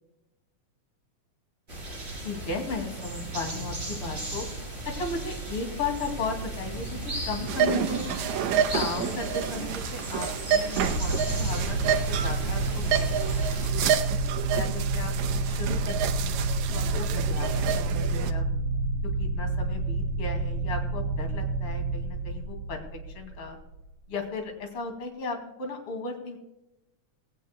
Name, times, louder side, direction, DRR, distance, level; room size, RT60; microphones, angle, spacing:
sound 1, 1.7-13.7, right 1 dB, 20° right, 4.1 m, -36 dB
voice 1, 2.2-4.4 4.9-8.1 8.7-14.0 14.5-15.1 15.5-18.6 19.2-23.6 24.1-26.4, left 4 dB, 50° left, 3 dB, 3.1 m, -36 dB
sound 2, 7.5-18.3, right 8 dB, 75° right, 2.0 m, -29 dB
sound 3, 10.8-23.8, right 2 dB, 40° right, 1.9 m, -29 dB
18.5 x 18.0 x 2.2 m, 0.95 s
omnidirectional pair, 3.5 m